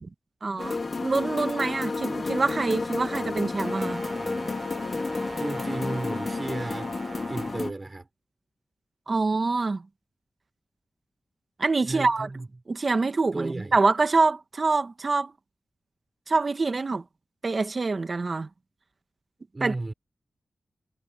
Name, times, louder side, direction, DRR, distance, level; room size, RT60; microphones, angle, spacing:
voice 1, 0.4-4.0 9.1-9.8 11.6-12.3 12.7-15.3 16.3-17.0 17.4-18.5 19.6-19.7, right 3 dB, 50° right, 1.5 m, -25 dB
sound 1, 0.6-7.7, left 3 dB, 50° left, 3.0 m, -31 dB
Brass instrument, 3.6-7.7, right 4 dB, 65° right, 4.5 m, -42 dB
voice 2, 4.9-7.0 7.3-8.1 11.8-12.5 13.3-13.8 19.5-19.9, right 2 dB, 30° right, 4.1 m, -34 dB
cardioid pair, 65°, 0 cm